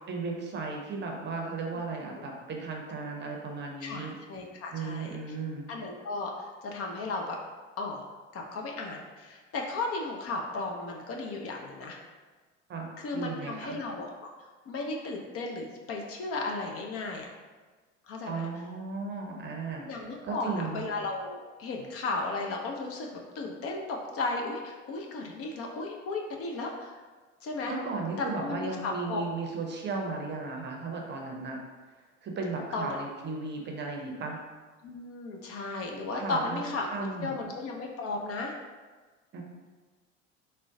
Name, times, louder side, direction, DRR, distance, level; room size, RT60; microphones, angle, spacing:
voice 1, 0.1-4.1 4.7-5.7 12.7-13.8 18.3-19.9 20.2-20.8 27.7-31.6 32.2-34.4 36.2-37.5 39.3-39.4, right 4 dB, 30° right, 0 dB, 0.7 m, -35 dB
voice 2, 3.8-5.4 5.7-7.4 7.8-8.0 8.3-12.0 13.0-14.1 14.7-17.3 18.1-18.5 19.9-23.1 23.3-26.9 27.4-27.7 28.2-29.3 32.7-33.0 34.8-36.9 37.2-38.5, left 3 dB, 40° left, 0 dB, 0.5 m, -35 dB
3.7 x 2.1 x 3.6 m, 1.4 s
figure-of-eight pair, 60°, 37 cm